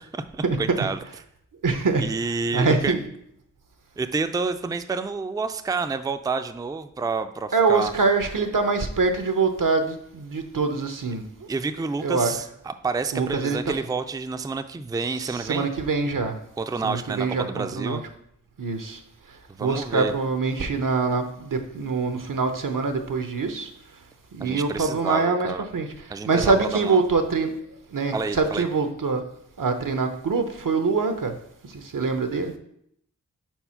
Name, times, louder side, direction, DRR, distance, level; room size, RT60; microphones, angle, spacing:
voice 1, 0.3-1.0 2.0-2.9 4.0-7.9 11.5-15.7 16.6-18.0 19.5-20.1 24.4-25.7 26.1-27.0 28.1-28.7, right 4 dB, 10° right, 9 dB, 0.3 m, -29 dB
voice 2, 1.6-2.0 2.5-3.0 7.5-11.5 12.0-12.3 13.1-13.6 15.2-16.4 16.8-18.0 18.6-19.0 19.6-23.7 24.3-25.9 26.2-27.5 27.9-29.2 29.6-31.4 31.6-32.5, right 4 dB, 80° right, 7 dB, 0.7 m, -24 dB
4.6 x 4.2 x 5.6 m, 0.73 s
wide cardioid pair, 40°, 32 cm